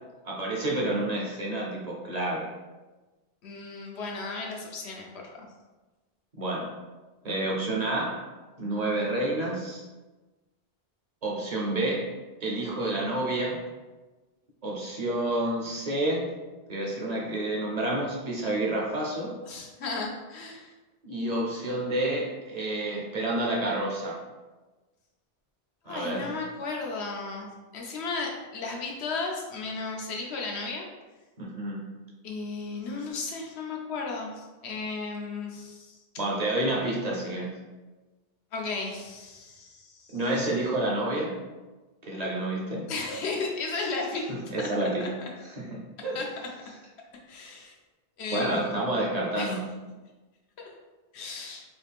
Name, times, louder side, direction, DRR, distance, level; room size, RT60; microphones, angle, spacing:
voice 1, 0.2-2.5 6.4-6.7 7.2-8.2 8.6-9.8 11.2-12.1 12.4-13.6 14.6-16.3 16.7-19.3 21.0-24.2 25.9-26.4 31.4-31.8 36.2-37.5 40.1-41.4 42.0-42.9 44.3-45.1 45.4-46.2 48.3-49.7, right 1 dB, 45° right, -3 dB, 0.7 m, -29 dB
voice 2, 3.4-5.5 19.4-20.7 25.9-30.8 32.2-36.0 38.5-40.2 42.9-45.3 46.1-46.3 47.3-47.7 48.2-48.9 49.3-49.6 50.6-50.7 51.1-51.6, left 3 dB, 85° left, 0 dB, 1.0 m, -35 dB
4.1 x 2.4 x 3.4 m, 1.2 s
omnidirectional pair, 1.1 m